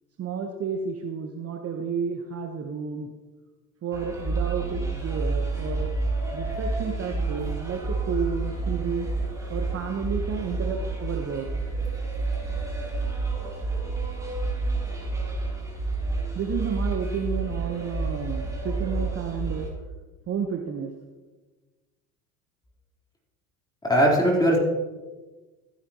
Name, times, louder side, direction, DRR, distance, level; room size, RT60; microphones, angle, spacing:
voice 1, 0.2-3.1 3.8-5.9 6.3-9.1 9.5-11.5 16.3-19.7 20.3-20.9, right 6 dB, 35° right, 3 dB, 1.2 m, -31 dB
sound 1, 3.9-19.7, right 3 dB, 10° right, 3.3 m, -29 dB
voice 2, 23.8-24.6, equal, 10° left, -3 dB, 3.9 m, -19 dB
15.0 x 9.6 x 3.0 m, 1.2 s
hypercardioid pair, 75°, 42 cm